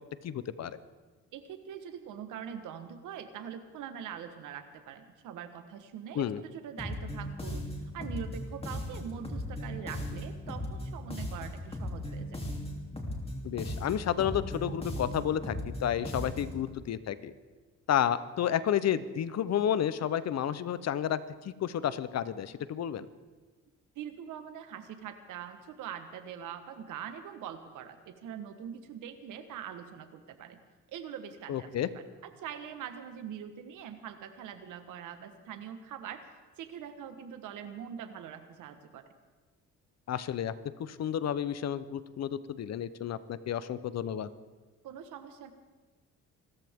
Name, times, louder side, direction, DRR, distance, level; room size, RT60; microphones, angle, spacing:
voice 1, 0.2-0.7 6.1-6.4 13.4-15.6 15.8-17.3 17.9-23.1 31.5-31.9 40.1-40.5 40.8-44.3, left 9 dB, 60° left, 15 dB, 0.9 m, -31 dB
voice 2, 1.3-7.7 7.9-12.4 23.9-30.6 30.9-31.7 32.2-36.2 36.6-39.0 44.8-45.5, right 8 dB, 85° right, 9 dB, 1.4 m, -43 dB
sound 1, 6.8-16.6, left 1 dB, 20° left, 3.1 m, -37 dB
27.0 x 14.0 x 3.7 m, 1.3 s
cardioid pair, 90°, 30 cm